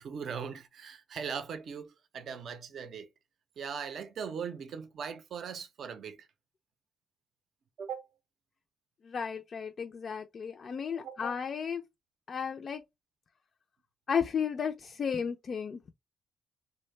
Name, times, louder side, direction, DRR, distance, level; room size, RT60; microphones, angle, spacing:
voice 1, 0.0-3.1 3.6-6.3 7.8-8.1 10.9-11.2, right 6 dB, 60° right, 0.5 m, -39 dB
voice 2, 9.0-11.8 12.3-12.8 14.1-15.8, left 7 dB, 45° left, 0.3 m, -33 dB
2.6 x 2.0 x 3.1 m
cardioid pair, 90°, 0 cm